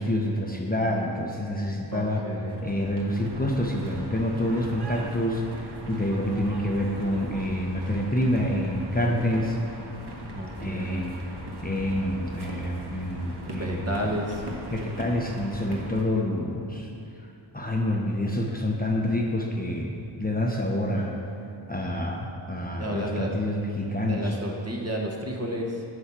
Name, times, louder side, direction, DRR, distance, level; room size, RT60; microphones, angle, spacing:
voice 1, 0.0-2.3 2.6-5.6 5.9-9.6 10.6-11.2 11.6-13.9 14.7-16.9 17.5-21.1 21.7-24.4, left 1 dB, 20° left, -1 dB, 1.0 m, -27 dB
voice 2, 1.9-2.6 10.3-11.0 13.5-14.4 22.8-23.4 24.0-25.8, equal, 30° right, -1 dB, 1.4 m, -32 dB
sound 1, 2.5-16.0, right 1 dB, 55° right, 1.6 m, -39 dB
8.1 x 5.5 x 7.5 m, 2.8 s
cardioid pair, 70°, 49 cm